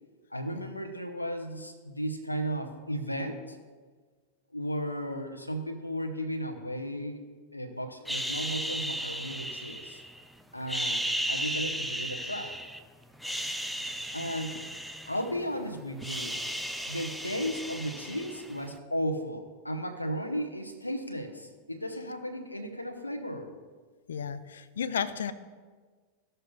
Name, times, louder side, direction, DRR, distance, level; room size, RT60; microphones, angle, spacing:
voice 1, 0.3-3.6 4.5-7.2 7.5-10.0 10.5-11.0 11.3-12.6 14.1-14.6 15.1-16.4 16.8-23.5, equal, 85° left, 4 dB, 0.8 m, -35 dB
sound 1, 8.1-10.2 10.6-12.8 13.1-15.5 15.8-18.7, equal, ahead, 0.4 m, -35 dB
voice 2, 24.1-25.3, left 7 dB, 65° left, 14 dB, 0.4 m, -33 dB
15.0 x 6.6 x 2.3 m, 1.5 s
figure-of-eight pair, 90°, 0 cm